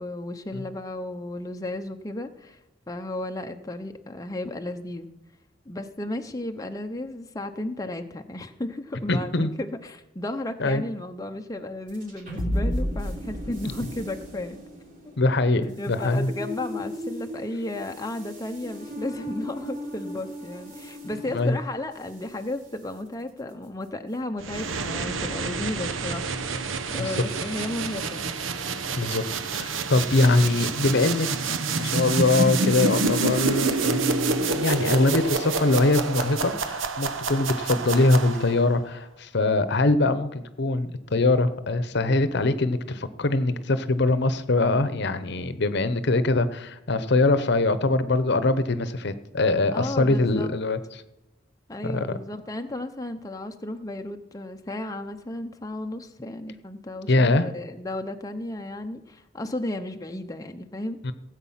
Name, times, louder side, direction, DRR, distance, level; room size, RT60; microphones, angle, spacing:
voice 1, 0.0-2.6 2.9-5.1 5.7-14.6 15.5-26.3 26.9-28.3 49.7-50.6 51.7-61.1, left 1 dB, 20° left, 5 dB, 0.7 m, -34 dB
voice 2, 9.1-9.5 10.6-10.8 15.2-16.3 21.3-21.6 27.0-27.1 29.0-29.2 29.5-50.8 51.8-52.2 57.1-57.5 61.0-61.1, left 2 dB, 60° left, 13 dB, 0.9 m, -23 dB
sound 1, 11.9-22.4, left 1 dB, 45° right, 3.2 m, -34 dB
sound 2, 24.4-38.7, right 3 dB, 85° right, 0.9 m, -28 dB
17.5 x 8.1 x 5.7 m, 0.91 s
head